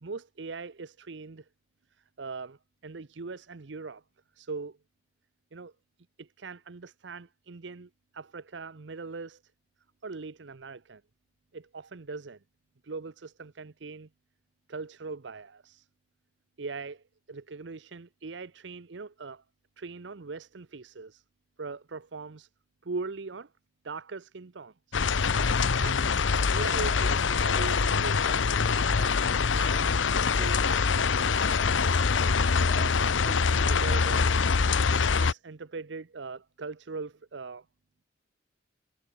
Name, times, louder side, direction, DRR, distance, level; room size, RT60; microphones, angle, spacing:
voice 1, 0.0-1.5 2.2-4.0 4.3-4.8 5.5-5.7 6.2-9.4 10.0-11.0 11.5-12.4 12.8-14.1 14.7-15.9 16.6-19.4 19.8-21.2 21.6-22.5 22.8-23.5 23.8-25.0 25.8-29.9 30.4-31.6 32.7-34.4 35.1-37.6, right 4 dB, 70° right, 0.8 m, -41 dB
sound 1, 24.9-35.3, left 5 dB, 85° left, 0.8 m, -24 dB
sound 2, 25.3-33.3, left 2 dB, 35° left, 2.1 m, -50 dB
head